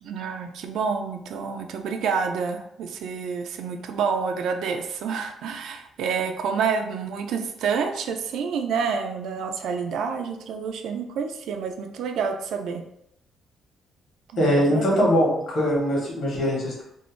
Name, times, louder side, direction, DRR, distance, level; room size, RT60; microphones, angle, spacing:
voice 1, 0.0-12.8 14.3-15.1, right 6 dB, 75° right, 6 dB, 0.3 m, -28 dB
voice 2, 14.4-16.8, equal, 60° left, -3 dB, 1.0 m, -22 dB
2.5 x 2.0 x 3.0 m, 0.75 s
cardioid pair, 140°, 0 cm